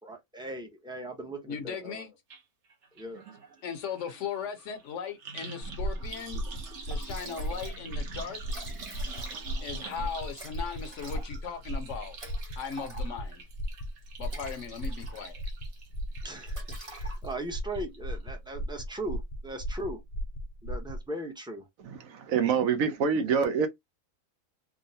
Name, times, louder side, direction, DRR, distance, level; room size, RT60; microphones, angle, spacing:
voice 1, 0.0-2.1 2.9-3.2 16.2-20.0 20.6-21.7 23.2-23.5, right 1 dB, 5° right, 0.5 m, -39 dB
voice 2, 1.5-2.1 3.6-6.4 6.8-8.4 9.6-12.2 12.6-13.4 14.2-15.4, left 7 dB, 65° left, 1.0 m, -38 dB
sound 1, 2.3-2.4 2.7-17.3 17.7-18.2 18.5-18.6, right 4 dB, 60° right, 1.0 m, -47 dB
sound 2, 5.6-21.0, equal, 50° left, 0.6 m, -36 dB
Liquid, 6.5-6.6 6.9-7.8 8.1-8.2 8.4-9.7 10.3-13.4 14.0-15.5 15.9-16.1 16.5-17.5, right 1 dB, 25° right, 0.9 m, -47 dB
voice 3, 22.0-23.7, right 6 dB, 80° right, 1.1 m, -25 dB
3.6 x 2.1 x 2.6 m
omnidirectional pair, 1.4 m